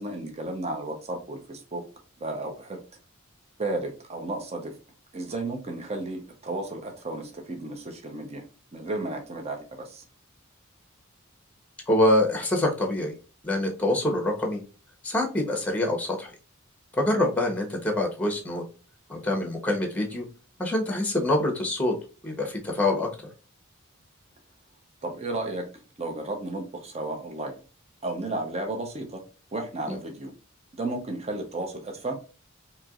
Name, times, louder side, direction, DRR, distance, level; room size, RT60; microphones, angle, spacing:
voice 1, 0.0-1.8 2.2-2.8 3.6-4.8 5.1-8.5 8.7-10.0 25.0-25.7 26.0-27.6 28.0-29.2 29.5-30.3 30.7-32.2, right 2 dB, 30° right, 4 dB, 0.7 m, -33 dB
voice 2, 11.9-13.2 13.4-14.6 15.0-16.3 17.0-18.6 19.1-20.2 20.6-21.9 22.2-23.1, left 1 dB, 5° left, 2 dB, 1.0 m, -25 dB
4.4 x 2.9 x 2.4 m, 0.36 s
head